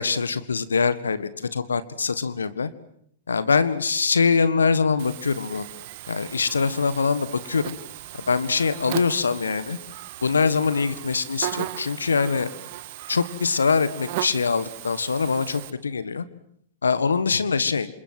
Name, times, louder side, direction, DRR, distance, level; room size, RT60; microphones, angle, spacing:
voice 1, 0.0-2.7 3.3-5.7 6.1-7.7 8.3-9.8 10.2-12.5 13.1-16.2 16.8-17.9, left 5 dB, 80° left, 15 dB, 1.7 m, -23 dB
Buzz, 5.0-15.7, right 15 dB, 50° right, 1.7 m, -37 dB
28.0 x 27.5 x 7.8 m, 0.70 s
figure-of-eight pair, 105°, 0 cm